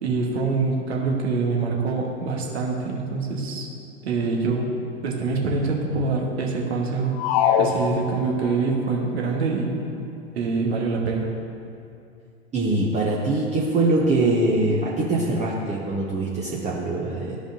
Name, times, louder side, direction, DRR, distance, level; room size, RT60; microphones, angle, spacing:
voice 1, 0.0-3.7 4.0-4.7 5.0-7.2 7.6-9.8 10.3-11.3, right 4 dB, 70° right, 0 dB, 1.4 m, -25 dB
sound 1, 7.2-8.6, left 7 dB, 30° left, 0.4 m, -23 dB
voice 2, 12.5-17.4, right 2 dB, 20° right, -4 dB, 0.8 m, -23 dB
13.0 x 5.0 x 2.7 m, 2.6 s
figure-of-eight pair, 95°, 34 cm